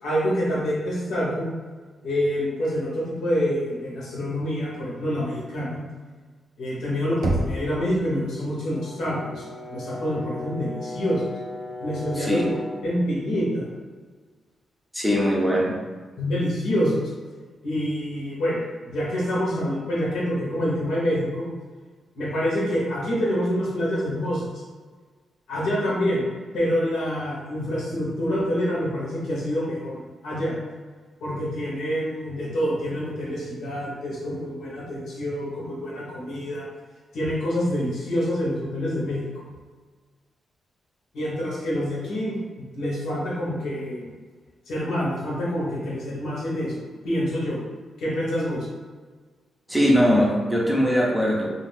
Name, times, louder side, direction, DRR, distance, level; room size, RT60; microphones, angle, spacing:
voice 1, 0.0-1.5 2.0-5.8 6.6-11.4 11.8-12.4 12.8-13.7 16.2-17.1 17.6-21.5 22.1-24.6 25.5-26.2 26.5-30.6 31.2-36.7 37.1-39.5 41.1-44.0 44.7-47.6 48.0-48.7, equal, 90° left, -5 dB, 1.0 m, -27 dB
Knock, 7.2-8.1, right 2 dB, 70° right, 0.5 m, -27 dB
Brass instrument, 8.7-12.9, left 2 dB, 55° left, 0.3 m, -37 dB
voice 2, 12.2-12.5 14.9-15.7 49.7-51.5, equal, ahead, -3 dB, 0.5 m, -21 dB
2.4 x 2.3 x 3.3 m, 1.4 s
cardioid pair, 115°, 0 cm